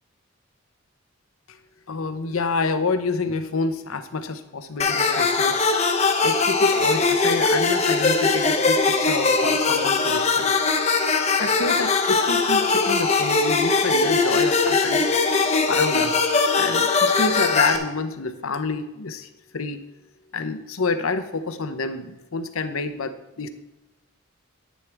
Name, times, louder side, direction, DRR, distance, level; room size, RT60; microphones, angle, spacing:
voice 1, 1.9-5.7 6.2-10.5 11.4-15.0 15.7-16.2 16.6-19.3 19.5-19.8 20.3-23.5, left 3 dB, 75° left, 9 dB, 0.8 m, -28 dB
sound 1, 4.8-17.8, left 4 dB, 30° left, 0.9 m, -21 dB
10.0 x 9.6 x 3.4 m, 1.0 s
head